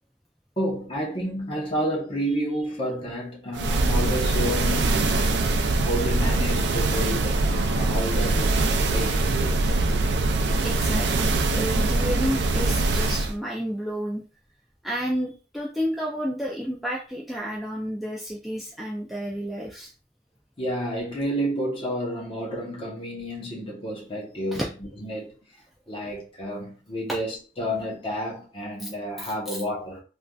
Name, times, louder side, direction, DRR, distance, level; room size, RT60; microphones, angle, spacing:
voice 1, 0.6-9.8 20.6-24.6 25.0-25.3 25.9-30.0, equal, 30° left, 0.9 m, -30 dB
sound 1, 3.6-13.3, right 2 dB, 75° right, 0.4 m, -23 dB
voice 2, 10.6-14.2 14.8-19.9 24.5-24.7 28.8-28.9 29.2-29.3, equal, ahead, 0.3 m, -31 dB
3.3 x 2.6 x 2.3 m
head